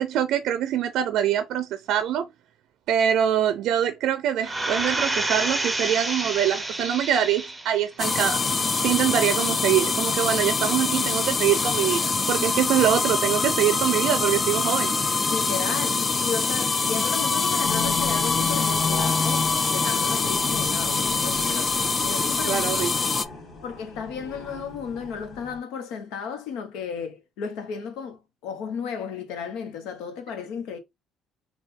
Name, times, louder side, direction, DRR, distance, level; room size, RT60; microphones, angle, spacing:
voice 1, 0.0-2.3 2.9-14.9 22.5-22.9, right 10 dB, 75° right, 0.4 m, -24 dB
sound 1, 4.4-7.8 8.3-8.4, right 2 dB, 10° right, 0.7 m, -28 dB
sound 2, 8.0-23.3, left 4 dB, 30° left, 0.4 m, -24 dB
voice 2, 15.3-21.7 22.0-22.7 23.6-30.8, left 6 dB, 85° left, 0.9 m, -34 dB
sound 3, 17.6-25.6, left 4 dB, 50° left, 2.2 m, -34 dB
4.2 x 2.3 x 3.6 m
cardioid pair, 100°, 0 cm